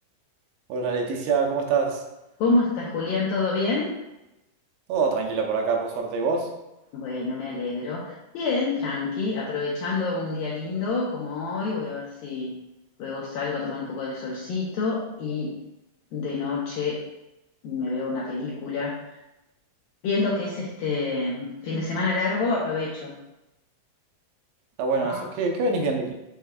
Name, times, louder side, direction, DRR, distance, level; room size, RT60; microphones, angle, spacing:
voice 1, 0.7-2.0 4.9-6.5 24.8-26.1, right 4 dB, 80° right, 2 dB, 3.0 m, -25 dB
voice 2, 2.4-3.9 6.9-8.0 8.3-12.5 13.0-15.5 16.1-17.0 17.6-18.9 20.0-23.2 25.0-25.2, left 3 dB, 85° left, -4 dB, 2.1 m, -27 dB
7.8 x 6.5 x 2.3 m, 0.94 s
omnidirectional pair, 5.2 m